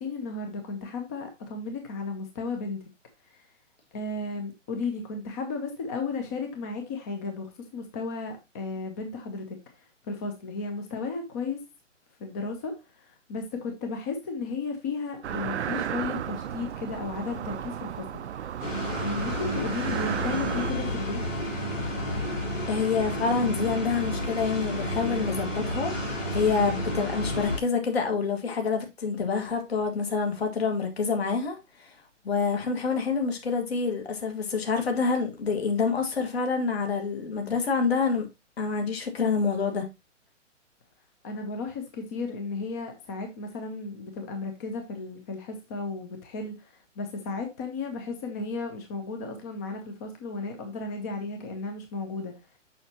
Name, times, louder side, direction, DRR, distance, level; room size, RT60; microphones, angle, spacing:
voice 1, 0.0-2.8 3.3-3.5 3.9-11.6 12.2-18.6 19.0-21.2 41.2-52.3, left 4 dB, 15° left, 0.5 m, -34 dB
sound 1, 15.2-20.7, right 9 dB, 60° right, 0.5 m, -34 dB
sound 2, 18.6-27.6, equal, 85° left, 2.6 m, -31 dB
voice 2, 22.7-31.9 32.2-38.3 38.6-39.9, left 5 dB, 55° left, 1.8 m, -27 dB
6.4 x 5.6 x 2.8 m
figure-of-eight pair, 130°, 38 cm